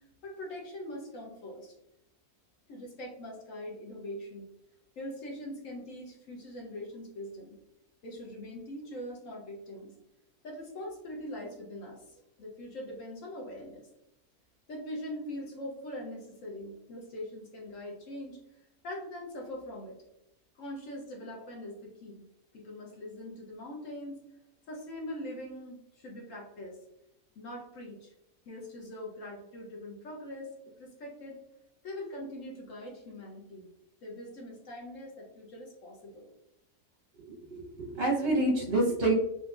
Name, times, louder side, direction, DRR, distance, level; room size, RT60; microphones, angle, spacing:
voice 1, 0.2-1.7 2.7-4.5 5.0-7.6 8.0-9.9 10.4-13.9 14.7-18.4 18.8-20.0 20.6-22.2 22.5-24.2 24.7-26.8 27.4-28.1 28.5-30.5 30.8-31.4 31.8-33.7 34.0-36.3, left 1 dB, 60° left, -1 dB, 1.0 m, -42 dB
voice 2, 37.5-39.1, right 2 dB, 45° right, -2 dB, 0.8 m, -27 dB
3.7 x 2.6 x 2.3 m, 0.84 s
omnidirectional pair, 1.7 m